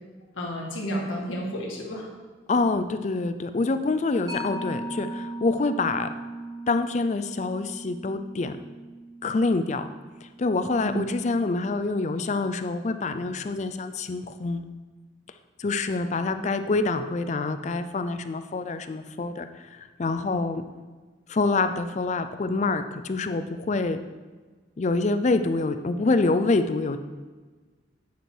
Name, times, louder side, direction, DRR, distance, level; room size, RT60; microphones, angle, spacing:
voice 1, 0.3-2.1 10.7-11.0 16.2-16.3, equal, 85° left, -2 dB, 1.7 m, -31 dB
voice 2, 2.5-6.1 6.7-8.6 9.2-9.9 10.4-14.6 15.6-20.7 21.3-24.0 24.8-27.0, left 3 dB, 35° left, 9 dB, 0.4 m, -26 dB
Mallet percussion, 4.3-11.3, right 1 dB, 20° right, 1.6 m, -39 dB
9.2 x 4.7 x 4.5 m, 1.4 s
head